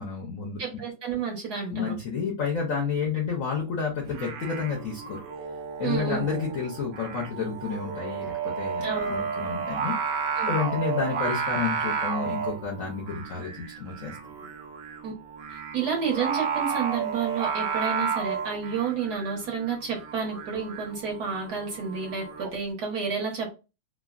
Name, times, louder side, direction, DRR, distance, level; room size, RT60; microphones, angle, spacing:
voice 1, 0.0-0.6 1.7-5.2 5.8-10.0 10.5-14.2, left 5 dB, 65° left, -1 dB, 0.8 m, -30 dB
voice 2, 0.6-1.9 5.8-6.2 8.8-9.2 10.4-10.6 15.0-15.1 15.5-23.5, right 6 dB, 60° right, 0 dB, 1.3 m, -30 dB
Singing, 4.0-22.5, right 6 dB, 90° right, 1.4 m, -32 dB
3.5 x 2.0 x 2.3 m, 0.29 s
omnidirectional pair, 2.1 m